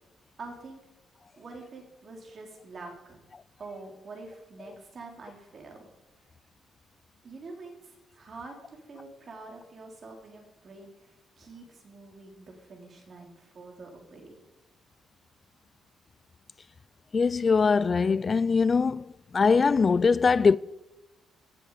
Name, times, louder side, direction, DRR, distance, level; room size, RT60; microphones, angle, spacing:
voice 1, 0.4-0.8 1.4-3.2 3.6-5.9 7.2-14.4, right 3 dB, 45° right, 3.6 m, -46 dB
voice 2, 17.1-19.0 19.3-20.6, left 5 dB, 35° left, 0.4 m, -22 dB
18.5 x 7.6 x 4.9 m
cardioid pair, 85°, 0 cm